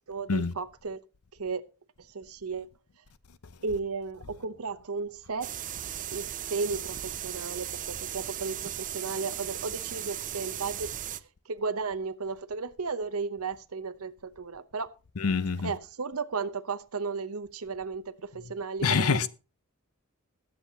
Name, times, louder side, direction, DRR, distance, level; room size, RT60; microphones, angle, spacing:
voice 1, 0.1-1.0 1.4-1.6 2.1-2.7 3.6-5.5 6.1-10.9 11.5-14.9 15.6-19.3, right 4 dB, 80° right, 0.9 m, -34 dB
sound 1, 5.4-11.2, right 11 dB, 35° right, 0.5 m, -37 dB
voice 2, 15.2-15.7 18.8-19.3, left 5 dB, 90° left, 0.7 m, -25 dB
21.0 x 8.0 x 2.9 m
head